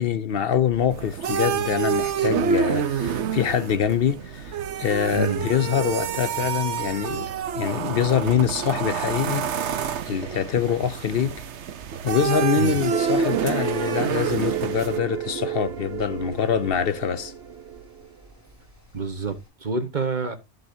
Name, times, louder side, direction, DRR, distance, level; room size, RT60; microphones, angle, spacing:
voice 1, 0.0-7.3 7.6-9.5 9.8-11.4 12.0-17.3, left 8 dB, 60° left, 0.8 m, -24 dB
Mechanical fan, 0.7-19.5, right 1 dB, 15° right, 5.1 m, -51 dB
sound 1, 0.9-15.0, right 7 dB, 85° right, 1.1 m, -28 dB
voice 2, 5.1-5.5 12.6-12.8 18.9-20.4, right 4 dB, 45° right, 1.4 m, -27 dB
sound 2, 12.9-18.1, right 9 dB, 65° right, 1.2 m, -31 dB
15.5 x 5.5 x 2.7 m
omnidirectional pair, 1.1 m